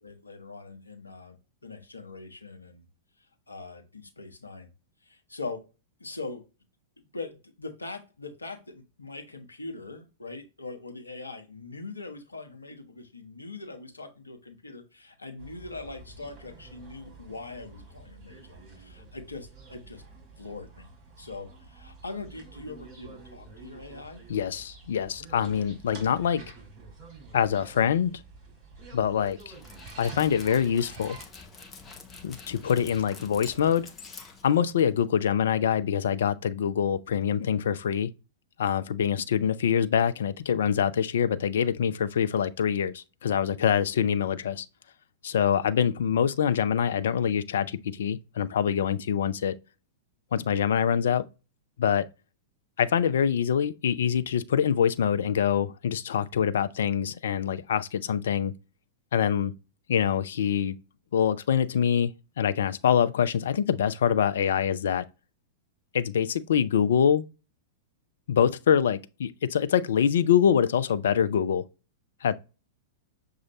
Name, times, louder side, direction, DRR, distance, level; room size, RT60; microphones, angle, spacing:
voice 1, 0.0-2.8 3.5-4.7 5.0-5.7 6.0-6.4 7.0-20.0 20.4-20.9 21.2-24.2, left 3 dB, 80° left, 0.8 m, -42 dB
sound 1, 15.4-31.2, right 3 dB, 35° right, 2.0 m, -48 dB
voice 2, 24.3-26.4 27.3-28.2 28.9-29.5 30.0-31.2 32.2-33.9 34.4-38.1 38.6-44.7 45.2-49.6 50.3-51.2 51.8-52.1 52.8-58.5 59.1-59.5 59.9-60.8 61.1-62.1 62.4-65.0 65.9-67.2 68.3-71.6 72.2-72.3, left 8 dB, 60° left, 0.3 m, -25 dB
Dog, 29.3-35.1, left 4 dB, 20° left, 0.7 m, -47 dB
6.2 x 2.5 x 2.9 m
figure-of-eight pair, 100°, 0 cm